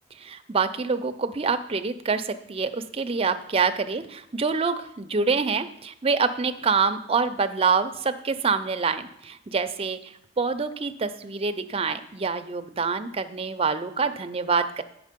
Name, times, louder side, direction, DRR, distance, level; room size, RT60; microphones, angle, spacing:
voice 1, 0.2-10.0 10.4-14.8, right 5 dB, 30° right, 9 dB, 0.5 m, -26 dB
8.2 x 6.0 x 5.1 m, 0.75 s
head